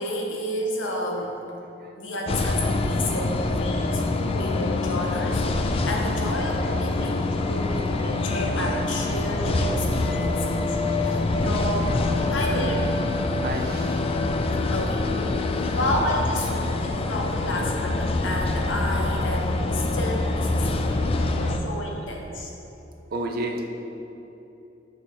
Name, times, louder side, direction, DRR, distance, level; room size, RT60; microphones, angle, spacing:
voice 1, 0.0-1.3 2.0-4.0 4.3-12.0 12.3-12.9 14.4-15.0 15.7-22.5, left 1 dB, 80° left, -1 dB, 1.0 m, -31 dB
sound 1, 2.3-21.6, left 2 dB, 30° left, 0.3 m, -25 dB
voice 2, 3.7-4.3 5.7-6.3 7.0-8.5 9.0-9.3 10.9-11.4 13.4-14.5 15.6-15.8 16.8-17.1 20.9-21.6 23.1-23.6, right 1 dB, 55° right, 3 dB, 0.6 m, -37 dB
6.0 x 6.0 x 3.7 m, 2.9 s
head